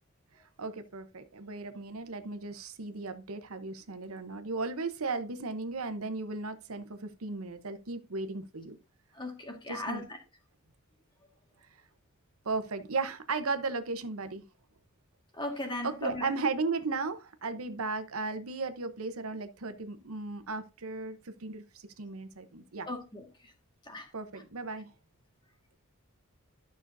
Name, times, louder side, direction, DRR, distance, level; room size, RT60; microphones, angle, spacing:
voice 1, 0.6-8.8 9.7-10.0 12.4-14.4 15.8-21.6 22.0-22.9 24.1-24.9, right 3 dB, 75° right, 0.9 m, -35 dB
voice 2, 9.2-10.0 15.4-16.3 22.9-23.3 23.9-24.1, left 1 dB, 20° left, 1.8 m, -37 dB
12.5 x 6.2 x 2.7 m
head